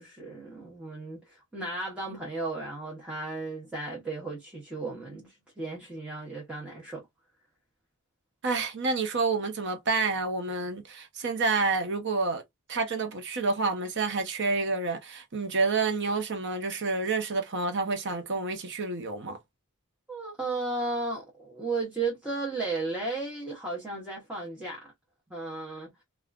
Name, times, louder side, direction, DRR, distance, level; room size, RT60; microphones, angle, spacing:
voice 1, 0.0-7.0 20.1-24.8 25.3-26.0, right 3 dB, 5° right, 0.8 m, -34 dB
voice 2, 8.4-12.4 12.7-19.4, right 3 dB, 55° right, 0.8 m, -29 dB
3.5 x 2.4 x 2.4 m
head